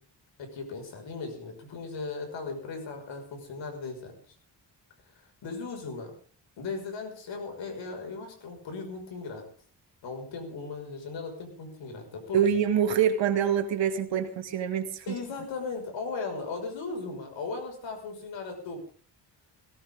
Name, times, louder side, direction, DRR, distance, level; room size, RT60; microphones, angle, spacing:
voice 1, 0.4-4.2 5.2-6.1 6.6-9.4 10.0-12.4 15.1-18.8, left 4 dB, 90° left, 4 dB, 6.0 m, -37 dB
voice 2, 12.3-15.1, right 8 dB, 90° right, 6 dB, 2.4 m, -25 dB
19.0 x 17.5 x 3.8 m, 0.41 s
cardioid pair, 110°, 43 cm